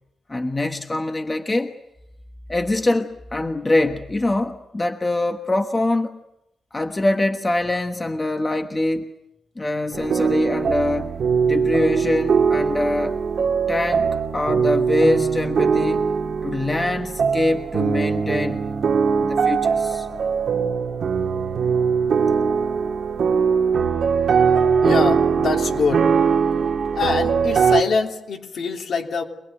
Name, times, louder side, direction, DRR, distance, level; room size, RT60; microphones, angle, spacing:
voice 1, 0.3-1.7 2.5-6.2 6.7-9.1 9.6-13.2 13.7-16.1 16.4-18.7 19.2-20.1, left 2 dB, 20° left, 6 dB, 1.3 m, -24 dB
sound 1, 9.9-27.8, right 6 dB, 60° right, 1.9 m, -21 dB
voice 2, 24.8-26.1 26.9-29.2, left 5 dB, 65° left, 2 dB, 3.1 m, -24 dB
26.0 x 20.0 x 9.2 m, 0.86 s
cardioid pair, 120°, 0 cm